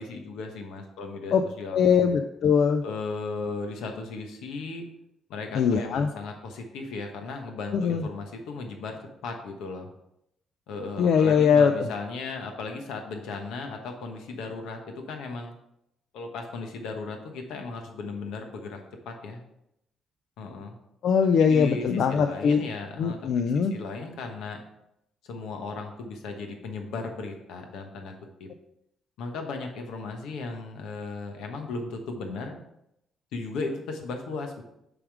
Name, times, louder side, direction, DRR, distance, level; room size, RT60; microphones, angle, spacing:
voice 1, 0.0-2.0 2.8-4.9 5.3-9.0 9.2-9.9 10.7-15.5 16.1-19.4 20.4-20.7 21.4-24.6 25.2-28.1 28.4-28.5 29.2-32.6 33.3-34.6, left 3 dB, 90° left, 4 dB, 1.0 m, -36 dB
voice 2, 1.7-2.8 5.5-6.1 7.7-8.0 11.0-11.9 21.0-22.6 23.0-23.8, left 6 dB, 70° left, 7 dB, 0.4 m, -21 dB
6.9 x 3.6 x 4.7 m, 0.81 s
cardioid pair, 90°, 0 cm